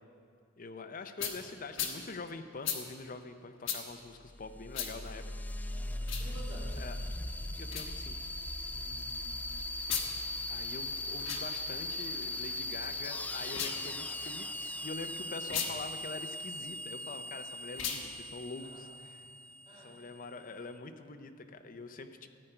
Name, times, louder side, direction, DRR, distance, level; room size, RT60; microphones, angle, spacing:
voice 1, 0.6-5.2 5.6-5.7 6.7-7.0 7.6-8.2 10.5-19.3 19.7-22.3, left 3 dB, 45° left, 7 dB, 0.6 m, -45 dB
sound 1, 1.2-1.4 1.7-2.0 2.6-2.8 3.6-3.8 4.7-4.9 6.0-6.3 7.6-7.9 9.8-10.1 11.1-11.4 13.4-13.8 15.4-15.7 17.7-18.0, left 8 dB, 75° left, 1.2 m, -35 dB
sound 2, 4.3-20.6, left 1 dB, 10° left, 0.3 m, -39 dB
voice 2, 5.7-6.8 8.7-9.5 18.6-18.8 19.1-19.2 19.6-20.0, right 1 dB, 25° right, -6 dB, 2.5 m, -52 dB
14.5 x 9.0 x 4.5 m, 2.3 s
head